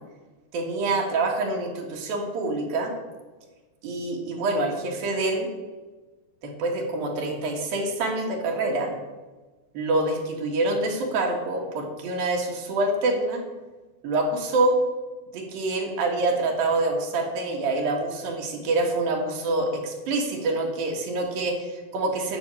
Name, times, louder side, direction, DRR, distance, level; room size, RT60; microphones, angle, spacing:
voice 1, 0.5-2.9 3.8-5.5 6.4-8.9 9.7-13.4 14.0-14.7 15.3-22.4, right 2 dB, 60° right, 1 dB, 3.1 m, -26 dB
10.5 x 6.2 x 8.4 m, 1.2 s
omnidirectional pair, 5.2 m